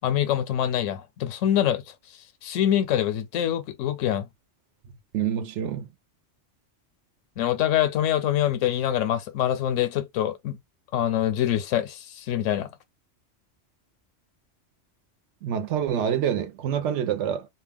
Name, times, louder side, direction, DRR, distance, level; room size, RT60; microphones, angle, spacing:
voice 1, 0.0-1.8 2.4-4.3 7.4-10.6 10.9-12.7, left 11 dB, 85° left, 0.9 m, -25 dB
voice 2, 5.1-5.9 15.4-17.5, right 9 dB, 75° right, 0.9 m, -26 dB
2.4 x 2.1 x 3.4 m
omnidirectional pair, 1.3 m